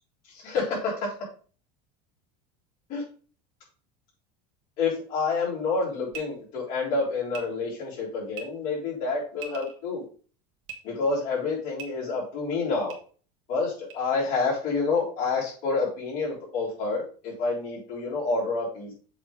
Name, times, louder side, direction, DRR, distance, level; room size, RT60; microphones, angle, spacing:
voice 1, 0.3-1.2 2.9-3.0 4.8-10.0 10.8-12.9 13.5-18.9, left 4 dB, 45° left, -6 dB, 3.6 m, -28 dB
sound 1, 6.1-6.2 7.3-7.4 8.3-8.4 9.3-9.8 10.6-10.8 11.8-11.9 12.9-13.0 13.9-14.0, right 6 dB, 65° right, 1.6 m, -39 dB
7.3 x 3.4 x 5.0 m, 0.41 s
cardioid pair, 165°, 20 cm